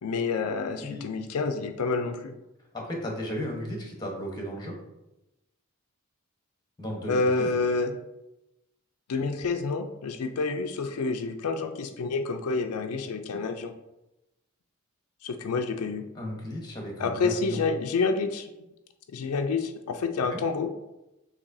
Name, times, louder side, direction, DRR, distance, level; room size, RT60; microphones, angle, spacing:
voice 1, 0.0-2.3 7.1-8.0 9.1-13.7 15.2-16.0 17.0-18.5 19.1-20.7, left 4 dB, 85° left, 5 dB, 0.4 m, -28 dB
voice 2, 2.7-4.8 6.8-7.6 16.1-17.6 20.3-20.4, equal, 20° left, 0 dB, 1.0 m, -35 dB
6.9 x 2.8 x 2.6 m, 0.94 s
head